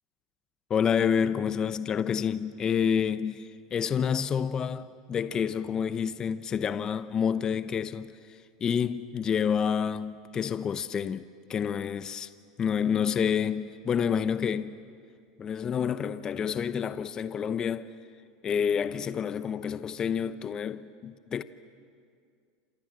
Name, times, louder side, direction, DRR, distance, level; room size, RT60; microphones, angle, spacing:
voice 1, 0.7-12.3 12.6-14.8 15.4-17.9 18.4-21.4, left 7 dB, 30° left, 0.9 m, -29 dB
28.5 x 27.5 x 7.5 m
hypercardioid pair, 105°, 2 cm